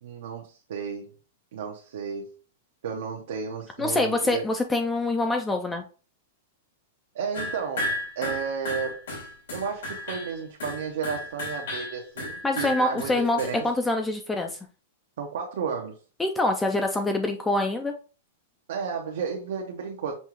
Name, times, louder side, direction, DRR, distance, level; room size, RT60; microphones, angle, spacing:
voice 1, 0.0-1.1 1.5-2.3 2.8-4.4 7.1-9.1 9.5-13.7 15.2-16.0 18.7-20.2, right 6 dB, 70° right, 0.8 m, -33 dB
voice 2, 3.8-5.8 12.4-13.4 13.6-14.6 16.2-17.9, left 2 dB, 10° left, 0.4 m, -25 dB
sound 1, 7.3-13.6, left 1 dB, 85° left, 2.2 m, -33 dB
5.4 x 2.4 x 3.0 m
supercardioid pair, 155°, 0 cm